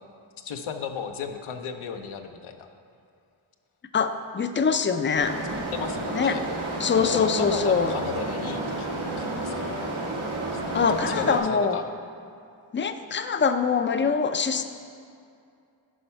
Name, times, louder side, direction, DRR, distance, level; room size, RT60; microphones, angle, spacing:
voice 1, 0.4-2.7 5.7-6.4 7.1-8.9 9.2-9.9 10.5-10.6 10.9-11.9, left 7 dB, 80° left, 5 dB, 0.7 m, -34 dB
voice 2, 3.9-5.4 6.1-6.4 6.8-7.9 10.7-11.8 12.7-14.6, left 5 dB, 25° left, 9 dB, 0.4 m, -24 dB
sound 1, 5.2-11.4, right 2 dB, 85° right, 1.6 m, -31 dB
10.0 x 4.4 x 5.6 m, 2.4 s
cardioid pair, 80°, 48 cm